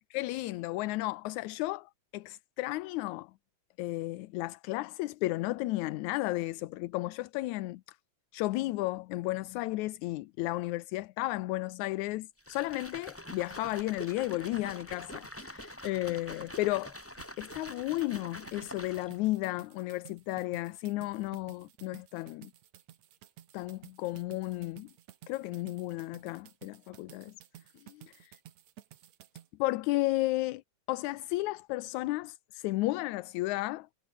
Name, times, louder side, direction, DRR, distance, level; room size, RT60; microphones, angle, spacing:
voice 1, 0.1-3.3 3.8-8.0 8.3-17.0 17.4-22.5 23.5-24.9 25.3-27.3 27.8-27.9 29.6-30.6 30.9-33.9, left 18 dB, 80° left, 2.0 m, -33 dB
sound 1, 12.4-19.3, left 1 dB, 5° left, 2.8 m, -45 dB
sound 2, 17.2-29.5, right 11 dB, 70° right, 2.5 m, -55 dB
omnidirectional pair, 3.4 m